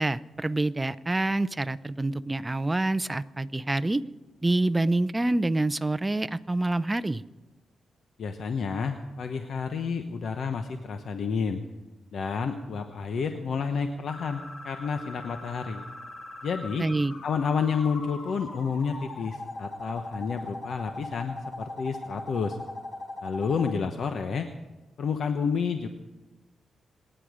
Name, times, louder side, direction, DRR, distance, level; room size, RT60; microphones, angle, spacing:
voice 1, 0.0-4.0 4.4-7.2 16.8-17.1, right 2 dB, 15° right, 13 dB, 0.5 m, -26 dB
voice 2, 8.2-11.6 12.1-15.8 16.4-16.8 17.2-22.6 23.2-24.5 25.0-25.9, left 5 dB, 70° left, 6 dB, 1.0 m, -30 dB
sound 1, 14.1-23.7, left 2 dB, 50° left, 2.7 m, -40 dB
27.0 x 10.0 x 5.0 m, 1.1 s
cardioid pair, 100°, 0 cm